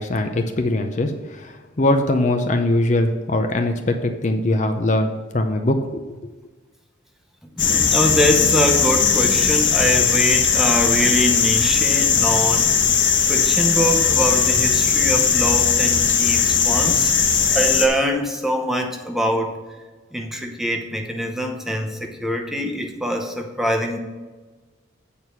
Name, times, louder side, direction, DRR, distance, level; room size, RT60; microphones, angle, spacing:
voice 1, 0.0-6.0, left 1 dB, 40° left, 5 dB, 0.6 m, -21 dB
voice 2, 7.5-12.7 13.3-19.6 20.1-24.0, equal, ahead, 2 dB, 0.8 m, -23 dB
sound 1, 7.6-17.9, left 6 dB, 75° left, 1.3 m, -18 dB
8.4 x 4.6 x 6.9 m, 1.3 s
head